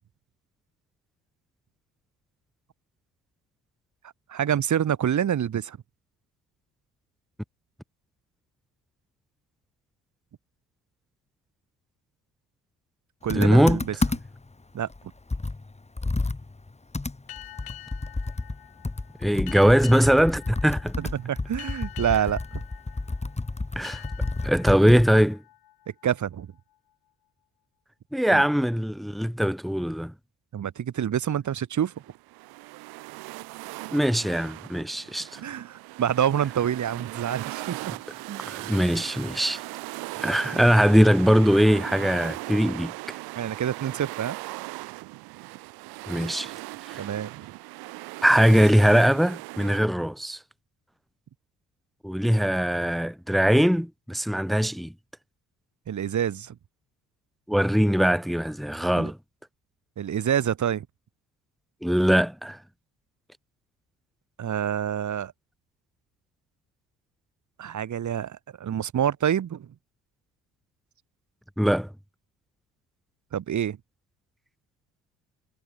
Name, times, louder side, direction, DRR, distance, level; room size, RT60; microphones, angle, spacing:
voice 1, 4.3-5.8 13.2-14.0 14.7-14.9 21.0-22.6 26.0-26.5 28.3-28.4 30.5-31.9 35.4-38.5 43.3-44.4 47.0-47.3 55.9-56.6 58.9-59.1 60.0-60.9 64.4-65.3 67.6-69.7 73.3-73.8, right 9 dB, 50° right, 2.1 m, -27 dB
Computer keyboard, 13.3-14.5 14.9-15.0 15.3-18.6 18.8-25.3, left 3 dB, 20° left, 4.0 m, -31 dB
voice 2, 13.3-13.8 19.2-20.9 23.7-24.0 24.4-25.4 28.1-30.1 33.9-35.4 38.4-39.6 40.2-43.1 46.1-46.5 46.9-47.0 48.2-50.4 52.0-54.9 57.5-59.2 61.8-62.6 71.6-71.9, equal, ahead, 1.4 m, -21 dB
sound 1, 17.3-26.6, left 14 dB, 75° left, 7.0 m, -46 dB
sound 2, 31.8-49.8, right 23 dB, 90° right, 5.5 m, -38 dB
supercardioid pair, 75°, 36 cm